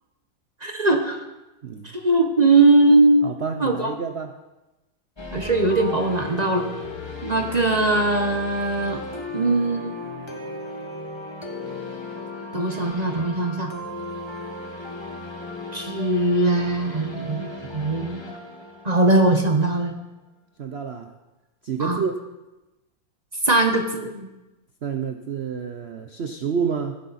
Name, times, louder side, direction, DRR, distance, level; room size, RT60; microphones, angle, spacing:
voice 1, 0.6-1.2 1.8-3.3 3.6-3.9 5.3-6.7 7.2-9.0 9.3-10.2 12.5-13.7 15.7-18.2 18.8-19.9 21.8-22.0 23.4-24.3, right 2 dB, 30° right, 4 dB, 0.8 m, -20 dB
voice 2, 1.6-1.9 3.2-4.4 7.4-7.5 20.6-21.1 21.6-22.2 24.8-27.0, right 6 dB, 90° right, 6 dB, 0.5 m, -29 dB
sound 1, 5.2-20.0, left 2 dB, 15° left, 1.2 m, -36 dB
15.0 x 11.0 x 4.1 m, 1.0 s
omnidirectional pair, 2.1 m